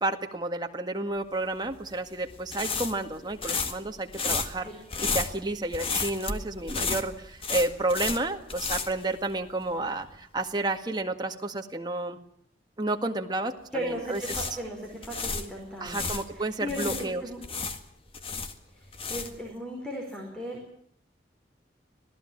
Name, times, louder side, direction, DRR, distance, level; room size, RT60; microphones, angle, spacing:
voice 1, 0.0-4.7 5.0-12.2 12.8-14.2 15.8-17.2, right 2 dB, 25° right, 4 dB, 1.9 m, -31 dB
sound 1, 1.6-9.7 10.0-10.2 13.9-16.2 16.7-19.5, left 4 dB, 30° left, 1.8 m, -33 dB
voice 2, 13.7-17.4 18.8-20.6, equal, 5° left, 0 dB, 4.9 m, -37 dB
26.0 x 17.0 x 8.8 m, 0.66 s
head